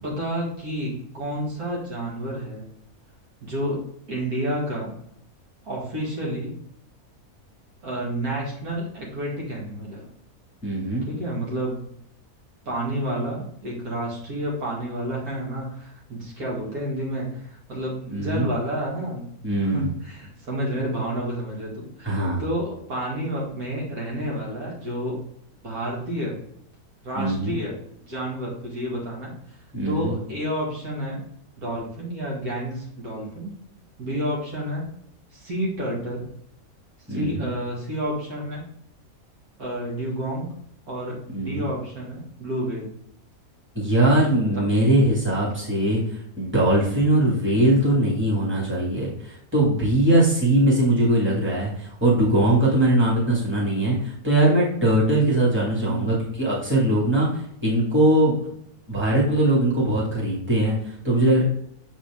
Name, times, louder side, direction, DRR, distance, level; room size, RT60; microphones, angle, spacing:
voice 1, 0.0-2.7 3.4-3.8 4.1-4.9 5.7-6.6 7.8-10.0 11.1-11.9 12.7-19.3 19.6-25.2 25.6-26.4 27.0-29.6 29.9-31.2 31.6-33.5 34.0-34.9 35.3-36.3 37.1-38.6 39.6-40.5 40.9-42.9 44.5-44.6 55.8-56.1, right 1 dB, 70° right, -4 dB, 2.5 m, -30 dB
voice 2, 10.6-11.1 18.1-18.5 19.4-19.9 22.1-22.4 27.2-27.6 29.7-30.1 37.1-37.5 41.3-41.6 43.8-58.4 58.9-61.4, right 1 dB, 10° right, -5 dB, 2.0 m, -21 dB
7.0 x 4.3 x 3.6 m, 0.70 s
omnidirectional pair, 1.6 m